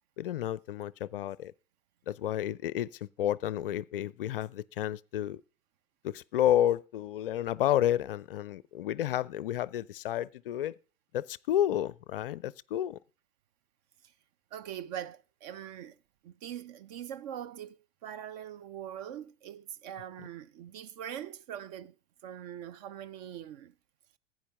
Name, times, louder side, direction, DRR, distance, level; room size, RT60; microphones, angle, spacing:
voice 1, 0.2-1.5 2.1-5.4 6.0-10.8 11.1-13.0, left 11 dB, 45° left, 0.5 m, -31 dB
voice 2, 14.5-16.0 16.2-21.9 22.2-23.7, right 10 dB, 35° right, 0.6 m, -42 dB
15.5 x 9.3 x 3.5 m
figure-of-eight pair, 95°, 38 cm